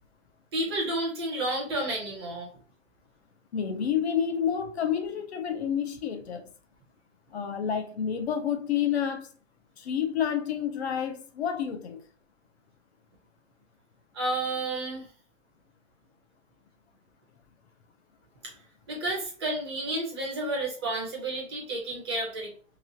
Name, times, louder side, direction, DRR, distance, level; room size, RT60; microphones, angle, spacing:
voice 1, 0.5-2.5 14.1-15.0 18.9-22.5, right 2 dB, 20° right, 0.6 m, -31 dB
voice 2, 3.5-6.5 7.3-9.3 9.8-12.0, left 8 dB, 55° left, 0.6 m, -29 dB
3.0 x 2.8 x 2.7 m
hypercardioid pair, 160°, 38 cm